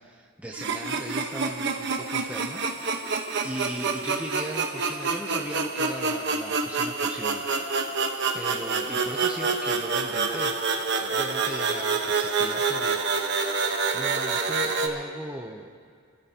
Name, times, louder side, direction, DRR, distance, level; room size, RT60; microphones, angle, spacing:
voice 1, 0.0-3.1 3.4-7.4 8.3-10.6 11.0-13.1 13.9-15.7, right 1 dB, 5° right, 0 dB, 0.7 m, -38 dB
sound 1, 0.5-14.9, right 4 dB, 55° right, 1.1 m, -27 dB
26.5 x 12.5 x 2.9 m, 2.2 s
head